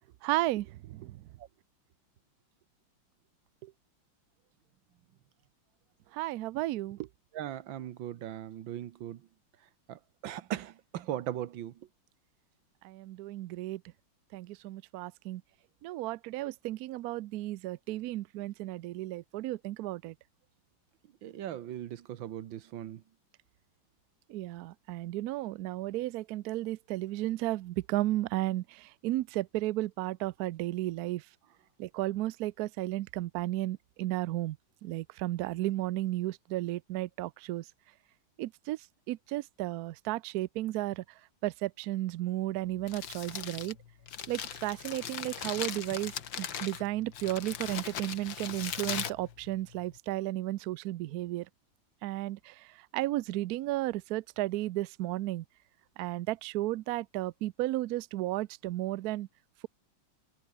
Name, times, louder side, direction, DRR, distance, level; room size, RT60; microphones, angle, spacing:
voice 1, 0.2-1.2 3.6-3.7 6.1-7.1 12.8-13.8 14.3-15.4 15.8-20.1 24.3-31.2 31.8-34.6 34.8-37.6 38.4-38.8 39.1-41.0 41.4-43.8 44.3-51.5 52.0-55.4 56.0-59.3, right 16 dB, 90° right, 0.8 m, -34 dB
voice 2, 7.3-9.3 9.9-11.9 21.2-23.0, right 11 dB, 70° right, 1.7 m, -39 dB
Crumpling crinkling, 42.7-50.0, left 8 dB, 70° left, 2.2 m, -39 dB
omnidirectional pair, 2.2 m